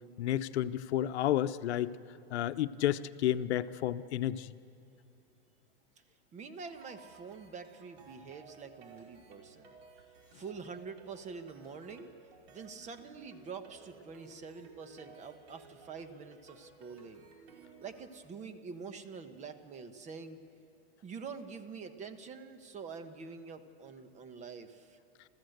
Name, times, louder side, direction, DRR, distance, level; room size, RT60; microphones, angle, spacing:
voice 1, 0.2-1.9 2.3-4.5, left 12 dB, 90° left, 12 dB, 0.8 m, -31 dB
voice 2, 6.3-9.7 10.3-12.1 12.5-17.3 17.8-20.4 21.0-25.0, right 5 dB, 20° right, 9 dB, 1.1 m, -46 dB
sound 1, 6.7-18.0, right 4 dB, 70° right, 5.0 m, -57 dB
29.0 x 14.0 x 7.9 m, 2.9 s
supercardioid pair, 150°, 32 cm